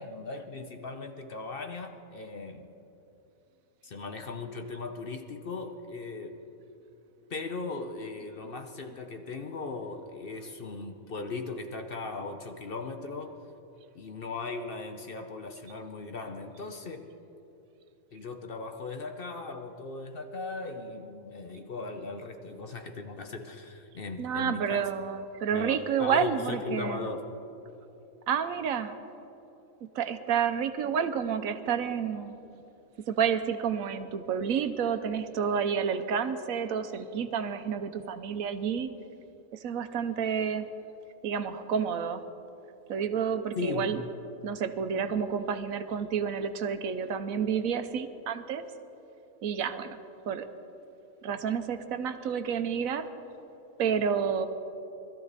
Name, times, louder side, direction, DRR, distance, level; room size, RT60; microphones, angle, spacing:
voice 1, 0.0-2.7 3.8-6.4 7.3-13.4 13.9-17.1 18.1-24.8 25.5-27.3 43.6-44.0 45.0-45.1, left 3 dB, 50° left, 6 dB, 0.8 m, -38 dB
voice 2, 24.2-27.1 28.3-28.9 29.9-32.3 33.1-38.9 39.6-40.7 41.2-42.2 42.9-44.0 44.4-48.6 49.4-50.0 50.3-50.5 51.2-53.1 53.8-54.5, right 7 dB, 75° right, 10 dB, 1.1 m, -30 dB
20.5 x 13.5 x 4.1 m, 3.0 s
omnidirectional pair, 1.5 m